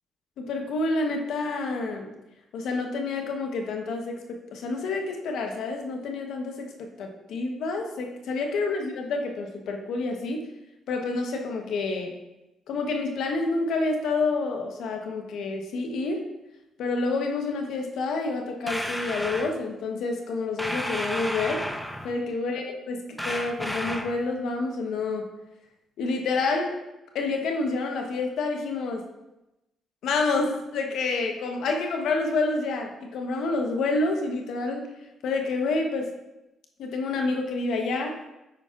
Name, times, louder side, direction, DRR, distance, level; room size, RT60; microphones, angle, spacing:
voice 1, 0.4-2.1 2.5-10.4 10.9-12.2 12.7-16.2 16.8-21.7 22.0-25.3 26.0-26.8 27.1-29.0 30.0-34.9 35.2-36.1 36.8-38.2, left 3 dB, 75° left, 3 dB, 0.9 m, -28 dB
sound 1, 18.7-19.5 20.6-22.2 23.2-24.2, equal, 5° left, 0.5 m, -32 dB
8.8 x 5.5 x 2.4 m, 0.94 s
cardioid pair, 90°, 0 cm